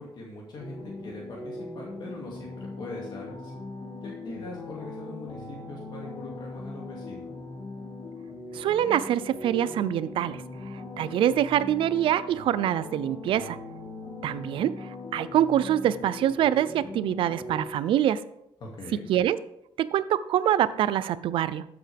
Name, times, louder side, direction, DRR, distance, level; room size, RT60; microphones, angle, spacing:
voice 1, 0.0-3.5 4.0-7.3 18.6-19.1, left 2 dB, 55° left, -2 dB, 2.3 m, -41 dB
sound 1, 0.5-17.7, left 2 dB, 85° left, 3.0 m, -40 dB
voice 2, 8.5-10.4 10.7-13.6 14.2-18.2 19.1-19.4 19.8-21.7, right 11 dB, 70° right, 16 dB, 0.5 m, -25 dB
12.5 x 8.0 x 3.5 m, 0.80 s
cardioid pair, 125°, 9 cm